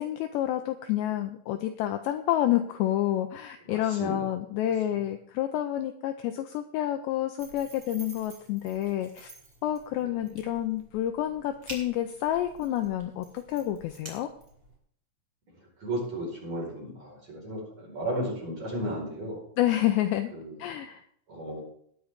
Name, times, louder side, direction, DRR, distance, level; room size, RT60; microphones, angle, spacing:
voice 1, 0.0-9.3 9.6-14.3 19.6-20.3 20.6-21.0, left 12 dB, 90° left, 7 dB, 2.4 m, -29 dB
voice 2, 3.6-4.3 4.6-5.0 10.0-10.1 15.8-19.4 20.3-20.5 21.3-21.6, right 1 dB, 35° right, -3 dB, 5.7 m, -34 dB
sound 1, 7.4-14.8, right 1 dB, 15° right, 3.3 m, -49 dB
19.5 x 8.4 x 3.7 m, 0.64 s
omnidirectional pair, 5.9 m